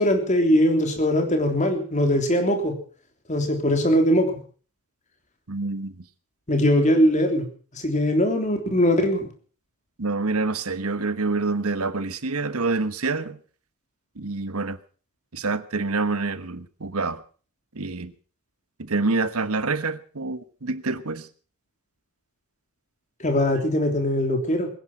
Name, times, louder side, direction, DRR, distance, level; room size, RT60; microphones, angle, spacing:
voice 1, 0.0-2.7 3.3-4.4 6.5-7.5 7.7-9.2 23.2-24.7, equal, 35° left, 3.4 m, -21 dB
voice 2, 5.5-5.9 10.0-13.4 14.2-14.8 15.3-17.2 17.7-18.1 18.8-21.3, right 3 dB, 75° right, 1.2 m, -27 dB
21.5 x 10.5 x 6.1 m
head